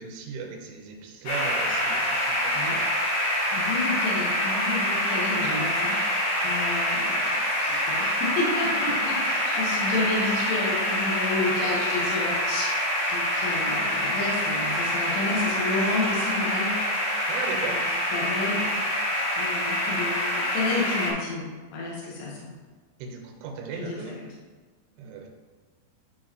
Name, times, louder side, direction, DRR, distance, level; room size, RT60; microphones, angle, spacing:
voice 1, 0.0-2.6 17.3-17.8 23.0-24.2 25.0-25.3, right 5 dB, 80° right, 1 dB, 3.3 m, -36 dB
sound 1, 1.3-21.1, equal, 55° left, 3.1 m, -26 dB
voice 2, 2.5-2.8 3.5-12.8 13.1-16.7 17.5-17.9 18.1-18.7 19.4-22.4 23.8-24.3, left 3 dB, 75° left, -5 dB, 3.7 m, -31 dB
11.5 x 4.6 x 3.0 m, 1.4 s
omnidirectional pair, 5.7 m